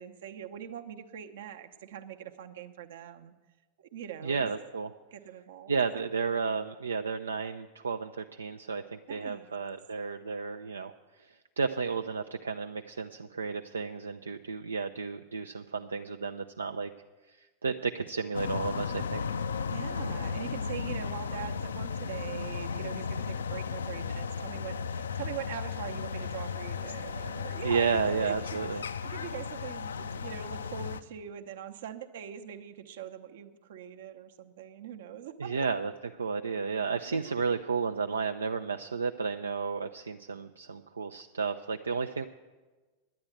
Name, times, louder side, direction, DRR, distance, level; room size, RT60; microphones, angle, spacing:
voice 1, 0.0-3.3 3.9-4.7 5.1-6.0 9.1-9.5 19.7-35.5 37.1-37.4, right 9 dB, 60° right, 7 dB, 0.8 m, -42 dB
voice 2, 4.2-4.9 5.7-10.9 11.6-16.9 17.4-19.4 27.6-28.8 35.4-35.9 36.2-42.3, right 5 dB, 75° right, 7 dB, 0.4 m, -32 dB
sound 1, 18.3-31.0, left 6 dB, 70° left, 0.4 m, -35 dB
10.5 x 9.5 x 7.8 m, 1.3 s
figure-of-eight pair, 90°, 0 cm